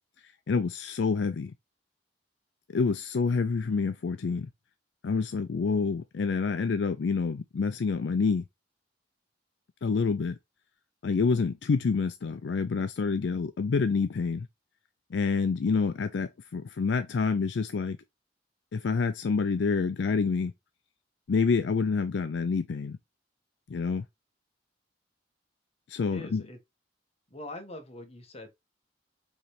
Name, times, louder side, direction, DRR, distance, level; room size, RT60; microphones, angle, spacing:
voice 1, 0.5-1.5 2.7-4.5 5.0-8.5 9.8-10.4 11.0-14.5 15.1-18.0 18.7-20.5 21.3-23.0 23.7-24.0 25.9-26.4, left 4 dB, 65° left, 0.4 m, -27 dB
voice 2, 26.0-26.6 27.3-28.5, left 1 dB, 35° left, 1.2 m, -43 dB
5.1 x 3.1 x 3.2 m
head